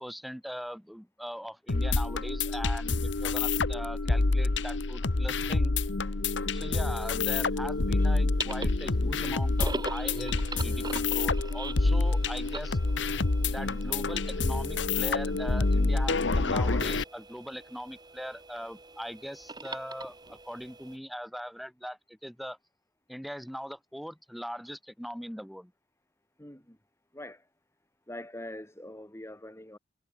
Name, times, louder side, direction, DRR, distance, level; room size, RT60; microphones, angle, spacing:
voice 1, 0.0-5.8 6.5-12.8 13.5-22.6 23.1-25.7, equal, ahead, 3.6 m, -40 dB
sound 1, 1.7-17.0, left 3 dB, 85° left, 1.1 m, -27 dB
sound 2, 7.4-21.0, right 3 dB, 25° right, 5.3 m, -43 dB
voice 2, 26.4-26.8 27.1-27.4 28.1-29.8, left 1 dB, 15° left, 3.4 m, -43 dB
head